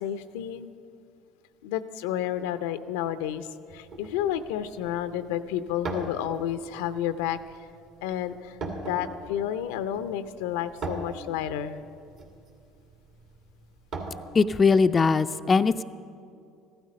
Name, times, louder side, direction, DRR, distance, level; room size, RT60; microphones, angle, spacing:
voice 1, 0.0-0.7 1.6-3.5 3.7-7.4 8.0-8.6 8.9-11.8, left 10 dB, 85° left, 12 dB, 0.5 m, -30 dB
sound 1, 3.7-15.1, right 3 dB, 60° right, 2.1 m, -40 dB
voice 2, 14.3-15.8, left 4 dB, 30° left, 10 dB, 0.3 m, -20 dB
14.5 x 12.5 x 5.3 m, 2.5 s
supercardioid pair, 85°, 0 cm